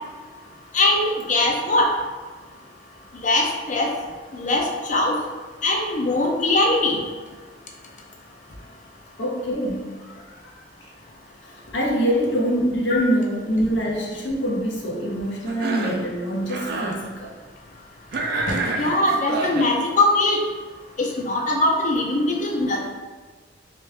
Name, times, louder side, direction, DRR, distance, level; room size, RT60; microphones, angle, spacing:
voice 1, 0.7-1.9 3.2-3.9 4.3-5.2 5.6-7.0 18.8-20.4 21.0-22.9, left 2 dB, 40° left, 0 dB, 0.6 m, -21 dB
voice 2, 9.2-10.4 11.4-17.4, equal, 75° left, -2 dB, 0.9 m, -25 dB
Cough, 15.5-16.1 16.4-17.0 18.1-19.7, right 2 dB, 55° right, 0.5 m, -27 dB
3.6 x 3.1 x 3.3 m, 1.4 s
head